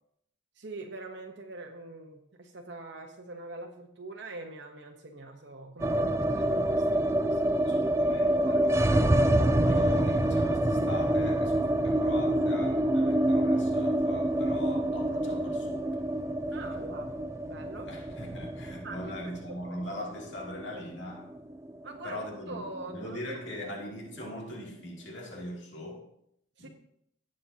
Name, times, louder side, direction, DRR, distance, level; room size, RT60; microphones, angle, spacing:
voice 1, 0.6-8.0 8.3-8.7 16.5-17.2 17.5-17.9 18.8-19.1 19.5-19.8 21.8-23.7 26.6-26.7, right 2 dB, 60° right, 1.0 m, -44 dB
sound 1, 5.8-21.9 22.2-22.3 22.5-23.3, right 1 dB, 15° right, 0.4 m, -27 dB
voice 2, 7.7-9.2 9.6-15.9 16.5-16.9 17.8-21.3 22.0-26.1 26.6-26.7, left 1 dB, 60° left, 2.6 m, -41 dB
17.0 x 7.7 x 2.8 m
head